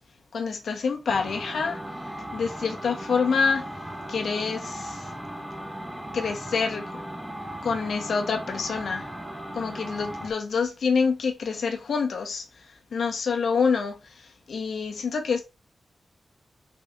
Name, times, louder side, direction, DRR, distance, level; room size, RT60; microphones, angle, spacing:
voice 1, 0.3-1.8 2.3-3.6 4.1-5.1 6.1-7.0 7.6-9.1 9.5-12.4 12.9-15.4, left 5 dB, 80° left, 1.9 m, -27 dB
sound 1, 1.1-10.3, right 1 dB, 10° right, 1.3 m, -37 dB
5.6 x 4.6 x 4.1 m
wide cardioid pair, 130°, 0 cm